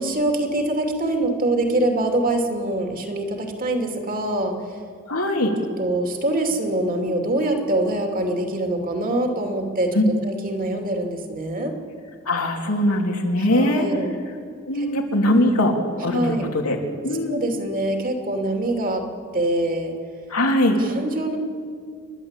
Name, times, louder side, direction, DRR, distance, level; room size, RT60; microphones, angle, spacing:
voice 1, 0.0-4.5 5.8-11.7 13.4-14.1 14.7-14.9 16.1-16.5 17.2-19.0 19.3-19.9 20.8-21.4, right 1 dB, 40° right, 4 dB, 2.6 m, -24 dB
voice 2, 5.1-5.5 9.9-10.1 12.3-13.8 14.7-15.7 16.0-16.8 17.0-17.4 20.3-20.8, left 1 dB, 90° left, 1 dB, 3.1 m, -21 dB
29.0 x 11.0 x 8.3 m, 2.2 s
head